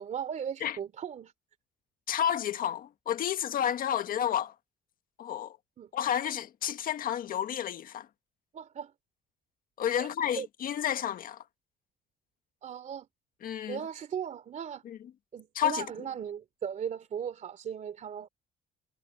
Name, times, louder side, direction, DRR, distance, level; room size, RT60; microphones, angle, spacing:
voice 1, 0.0-1.3 5.8-5.9 8.5-8.9 10.0-10.1 10.4-10.5 12.6-13.1 13.7-14.8 15.3-18.3, right 8 dB, 45° right, 2.9 m, -37 dB
voice 2, 2.1-4.5 5.2-5.6 5.9-8.1 9.8-11.4 13.4-13.8 15.5-15.8, left 10 dB, 55° left, 1.7 m, -30 dB
cardioid pair, 110°, 17 cm